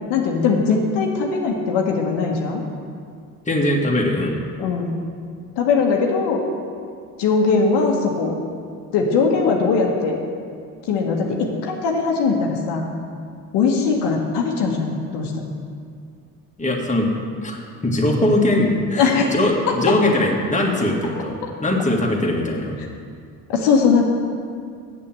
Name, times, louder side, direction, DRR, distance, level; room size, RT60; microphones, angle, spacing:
voice 1, 0.1-2.6 4.6-5.0 5.6-6.4 7.2-8.4 8.9-10.2 10.9-12.8 13.5-15.4 19.0-19.3 19.9-20.0 23.5-24.0, left 5 dB, 70° left, 0 dB, 1.3 m, -20 dB
voice 2, 3.5-4.4 16.6-17.1 17.4-17.6 17.8-22.7, left 1 dB, 15° left, -1 dB, 1.9 m, -21 dB
7.7 x 6.9 x 7.4 m, 2.2 s
hypercardioid pair, 60°, 42 cm